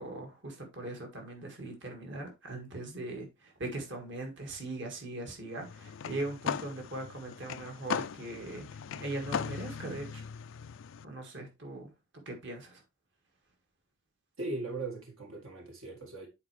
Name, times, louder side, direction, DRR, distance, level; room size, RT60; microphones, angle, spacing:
voice 1, 0.0-10.2 11.0-11.9 12.3-12.8, right 2 dB, 55° right, 1.9 m, -40 dB
sound 1, 5.6-11.0, left 7 dB, 60° left, 0.4 m, -39 dB
voice 2, 14.4-16.3, right 2 dB, 70° right, 1.8 m, -39 dB
9.5 x 4.6 x 3.2 m
head